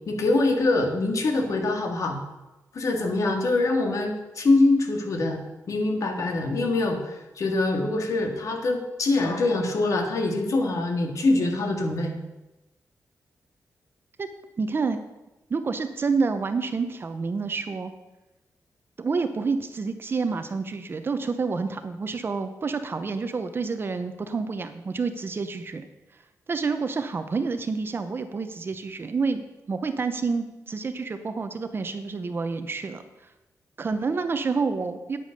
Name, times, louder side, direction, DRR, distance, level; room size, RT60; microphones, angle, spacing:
voice 1, 0.1-2.2 2.7-5.4 5.7-12.2, left 2 dB, 55° left, 3 dB, 1.9 m, -24 dB
voice 2, 14.6-15.0 15.5-17.9 19.0-25.9 26.5-33.0 33.8-35.2, right 4 dB, 35° right, 9 dB, 0.8 m, -28 dB
9.4 x 8.7 x 6.6 m, 1.0 s
wide cardioid pair, 175°, 6 cm